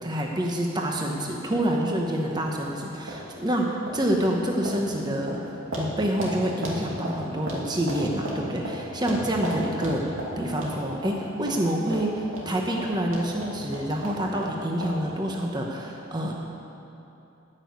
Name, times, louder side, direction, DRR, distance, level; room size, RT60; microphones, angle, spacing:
voice 1, 0.0-16.3, right 1 dB, 20° right, 0 dB, 1.0 m, -27 dB
sound 1, 1.5-1.6 2.3-2.4 3.1-3.2 3.9-4.1 4.7-4.8 5.3-5.4 5.7-5.9 6.2-6.4 6.6-7.6 7.9-8.8 9.1-10.3 10.6-10.7 11.0-11.2 11.5-11.6 11.9-12.0 12.3-12.5 12.8-14.5 14.8-15.0 15.3-15.4, equal, 70° right, 2.6 m, -33 dB
14.5 x 6.4 x 9.4 m, 2.8 s
head